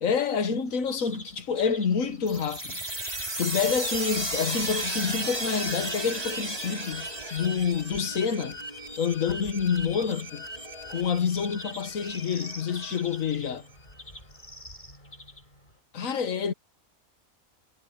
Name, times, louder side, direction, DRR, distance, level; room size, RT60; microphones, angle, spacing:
voice 1, 0.0-2.8 3.4-8.6 9.0-10.5 10.9-13.7 15.9-16.5, left 6 dB, 65° left, 1.6 m, -28 dB
sound 1, 0.7-15.8, left 1 dB, 30° left, 7.8 m, -46 dB
sound 2, 2.3-13.7, right 1 dB, 25° right, 5.2 m, -35 dB
omnidirectional pair, 1.5 m